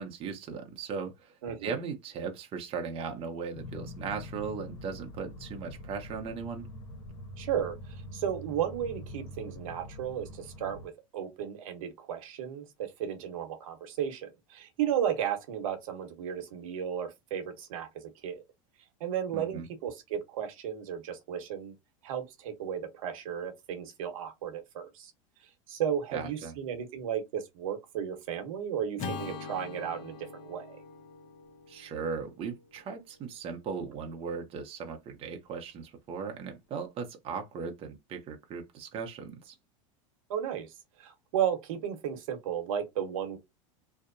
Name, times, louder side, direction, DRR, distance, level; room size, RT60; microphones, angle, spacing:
voice 1, 0.0-1.4 1.6-6.6 19.3-19.6 26.1-26.5 31.7-39.6, right 5 dB, 35° right, 0.6 m, -38 dB
voice 2, 1.4-1.8 7.4-18.4 19.0-21.7 22.0-25.1 25.7-30.8 40.3-40.7 41.0-43.4, right 9 dB, 75° right, 0.8 m, -34 dB
sound 1, 3.5-10.9, left 1 dB, 75° left, 0.9 m, -44 dB
Acoustic guitar / Strum, 29.0-33.4, left 5 dB, 45° left, 0.7 m, -43 dB
2.7 x 2.0 x 2.5 m
supercardioid pair, 115°, 17 cm